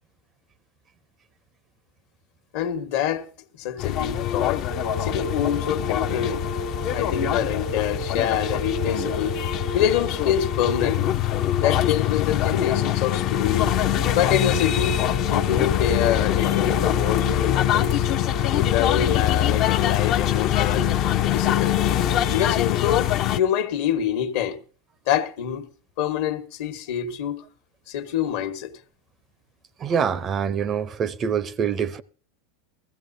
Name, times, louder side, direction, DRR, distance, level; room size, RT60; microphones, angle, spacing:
voice 1, 2.5-3.3 3.6-4.7 5.0-6.5 6.9-9.4 9.7-11.0 11.6-13.7 14.1-14.9 15.3-18.0 18.5-20.9 21.3-21.7 22.3-24.6 25.1-25.7 26.0-27.4 27.9-28.8, left 9 dB, 65° left, 1.2 m, -26 dB
sound 1, 3.8-23.4, left 12 dB, 45° left, 0.5 m, -23 dB
sound 2, 4.7-22.4, right 10 dB, 75° right, 1.0 m, -37 dB
voice 2, 29.8-32.0, right 7 dB, 30° right, 0.6 m, -25 dB
20.0 x 15.5 x 2.7 m
supercardioid pair, 115°, 0 cm